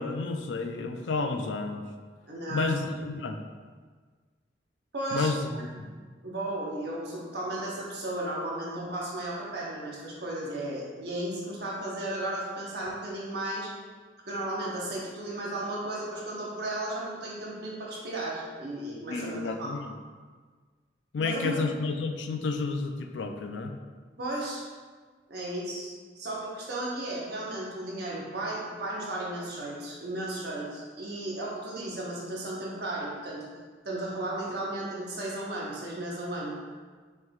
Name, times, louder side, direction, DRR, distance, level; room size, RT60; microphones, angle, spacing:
voice 1, 0.0-1.8 2.5-3.4 5.1-5.9 19.1-19.9 21.1-23.7, left 3 dB, 80° left, 5 dB, 0.4 m, -31 dB
voice 2, 2.3-2.8 4.9-5.6 6.2-13.7 14.3-19.7 21.2-21.7 24.2-24.7 25.3-33.4 33.8-36.5, right 1 dB, 60° right, -5 dB, 1.1 m, -34 dB
6.3 x 3.4 x 2.4 m, 1.5 s
head